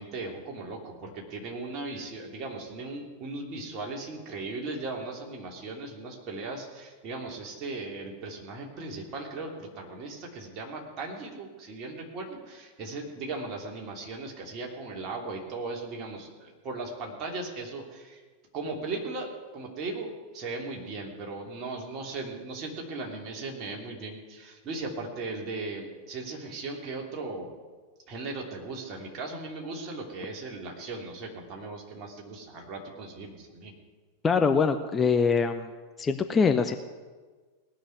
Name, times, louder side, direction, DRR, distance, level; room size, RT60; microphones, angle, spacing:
voice 1, 0.0-18.2 18.5-27.5 28.1-33.7, right 3 dB, 35° right, 0 dB, 3.1 m, -37 dB
voice 2, 34.2-35.7 36.0-36.8, left 5 dB, 20° left, 7 dB, 0.7 m, -23 dB
18.5 x 6.4 x 9.4 m, 1.4 s
figure-of-eight pair, 90°, 0 cm